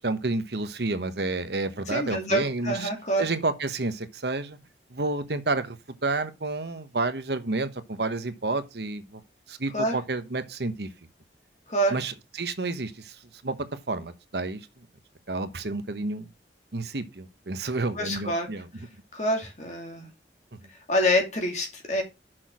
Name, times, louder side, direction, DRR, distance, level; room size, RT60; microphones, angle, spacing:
voice 1, 0.0-2.9 3.2-4.6 4.9-5.8 6.0-9.2 9.5-10.9 11.9-13.2 13.4-14.6 15.3-16.3 16.7-18.7, right 3 dB, 70° right, 1.1 m, -30 dB
voice 2, 1.9-3.3 9.7-10.0 11.7-12.0 17.9-18.5 19.1-20.1 20.9-22.0, equal, 40° left, 2.7 m, -26 dB
6.3 x 6.1 x 6.2 m
head